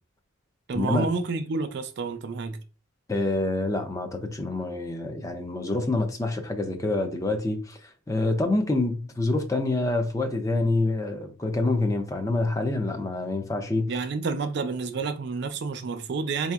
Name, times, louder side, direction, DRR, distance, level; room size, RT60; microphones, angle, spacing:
voice 1, 0.7-2.6 13.9-16.5, right 4 dB, 55° right, 0.4 m, -29 dB
voice 2, 3.1-13.9, left 2 dB, 15° left, 0.5 m, -27 dB
4.2 x 2.8 x 2.4 m
head